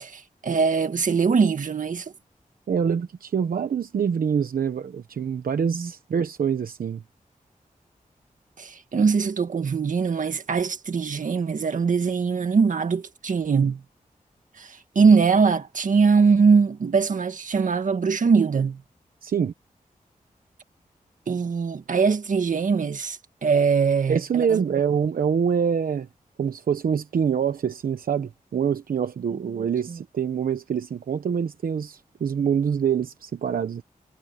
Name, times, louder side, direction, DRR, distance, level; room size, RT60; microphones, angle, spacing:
voice 1, 0.0-2.1 5.7-5.9 8.6-13.8 14.6-18.8 21.3-24.6 29.9-30.0, right 5 dB, 65° right, 1.8 m, -22 dB
voice 2, 2.7-7.0 19.2-19.5 24.1-26.1 26.4-33.8, right 7 dB, 90° right, 1.0 m, -25 dB
wide cardioid pair, 135°, 14 cm